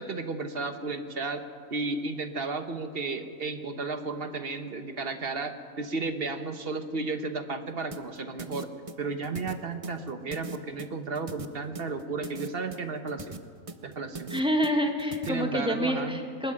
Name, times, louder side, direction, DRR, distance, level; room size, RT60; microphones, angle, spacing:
voice 1, 0.0-1.4 1.7-8.7 9.0-13.4 13.8-14.3 15.3-16.2, right 3 dB, 45° right, 8 dB, 1.3 m, -33 dB
sound 1, 7.9-15.3, right 3 dB, 30° right, 0.8 m, -41 dB
voice 2, 14.3-16.5, equal, 5° right, 3 dB, 1.8 m, -27 dB
21.5 x 13.0 x 9.7 m, 2.1 s
omnidirectional pair, 1.4 m